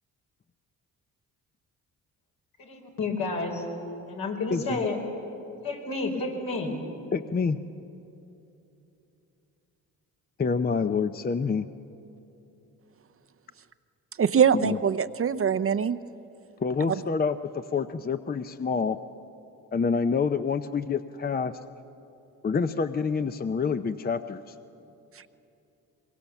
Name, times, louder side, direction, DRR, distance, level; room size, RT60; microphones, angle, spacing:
voice 1, 2.6-3.6 4.1-5.0 5.6-6.7, left 3 dB, 75° left, 0 dB, 4.7 m, -30 dB
voice 2, 7.1-7.6 10.4-11.7 14.5-14.8 16.6-19.0 19.7-21.5 22.4-24.5, left 5 dB, 25° left, 10 dB, 0.7 m, -27 dB
voice 3, 14.2-16.0, right 7 dB, 40° right, 13 dB, 0.7 m, -23 dB
22.5 x 22.0 x 7.2 m, 2.9 s
cardioid pair, 75°, 35 cm